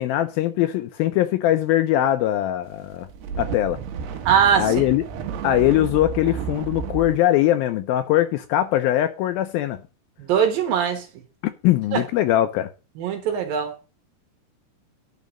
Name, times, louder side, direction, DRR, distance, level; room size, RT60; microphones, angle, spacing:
voice 1, 0.0-3.1 3.4-3.8 4.6-5.0 5.4-9.8 11.4-12.7, left 13 dB, 80° left, 2.2 m, -21 dB
sound 1, 2.9-7.2, right 7 dB, 85° right, 3.2 m, -31 dB
voice 2, 4.3-4.7 10.2-11.1 11.9-12.0 13.0-13.7, right 8 dB, 65° right, 3.1 m, -21 dB
10.5 x 4.8 x 6.2 m
omnidirectional pair, 4.6 m